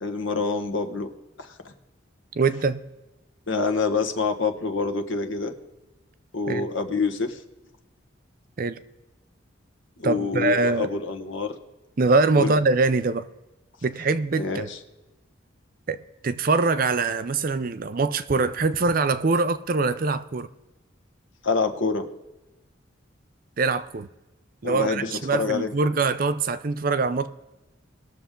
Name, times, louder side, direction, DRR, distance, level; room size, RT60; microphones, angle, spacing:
voice 1, 0.0-1.1 1.4-1.7 3.5-5.5 6.3-7.4 10.0-11.6 12.4-12.5 14.4-14.8 21.4-22.1 24.6-25.7, left 4 dB, 80° left, 1.2 m, -26 dB
voice 2, 2.4-2.8 6.5-6.6 8.6-8.8 10.0-10.9 12.0-13.3 13.8-14.7 15.9-16.0 16.2-20.5 23.6-24.1 24.6-27.3, right 3 dB, 45° right, 0.5 m, -23 dB
20.0 x 6.9 x 3.7 m
head